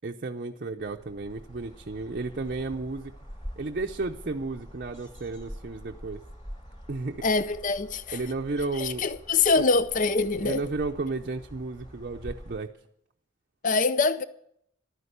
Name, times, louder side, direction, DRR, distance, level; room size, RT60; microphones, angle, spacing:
voice 1, 0.0-3.1 3.6-6.2 6.9-7.2 8.1-9.0 9.6-9.7 10.4-12.7, right 3 dB, 45° right, 0.6 m, -33 dB
sound 1, 0.8-12.6, equal, 25° left, 3.8 m, -45 dB
voice 2, 7.2-8.2 8.8-10.6 13.6-14.2, left 4 dB, 40° left, 0.5 m, -24 dB
12.0 x 9.7 x 8.0 m
head